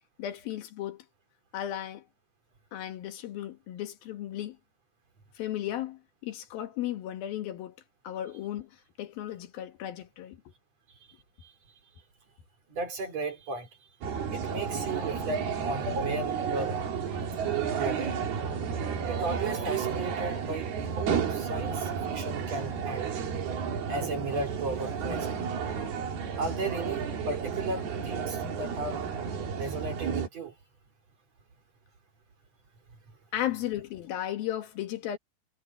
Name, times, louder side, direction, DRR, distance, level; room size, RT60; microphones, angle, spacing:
voice 1, 0.2-1.0 1.5-2.1 2.7-4.6 5.3-7.8 8.0-8.7 9.0-10.4 33.3-35.2, left 12 dB, 75° left, 3.3 m, -35 dB
voice 2, 12.7-13.7 14.3-16.8 17.8-18.1 19.1-23.0 23.9-25.4 26.4-29.0 29.6-30.5, right 2 dB, 45° right, 4.6 m, -35 dB
sound 1, 14.0-30.3, right 7 dB, 85° right, 4.9 m, -32 dB
omnidirectional pair, 4.3 m